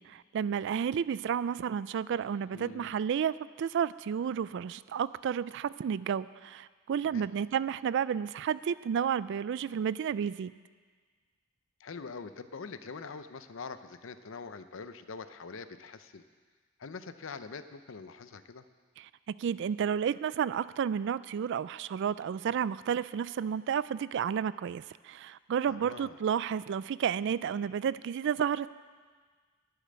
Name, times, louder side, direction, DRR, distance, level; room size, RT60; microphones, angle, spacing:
voice 1, 0.0-10.5 19.3-28.7, right 8 dB, 60° right, 18 dB, 0.3 m, -31 dB
voice 2, 2.5-2.9 7.0-7.3 11.8-16.2 16.8-18.6 25.7-26.2, left 4 dB, 65° left, 11 dB, 0.6 m, -44 dB
11.5 x 6.9 x 9.6 m, 1.5 s
head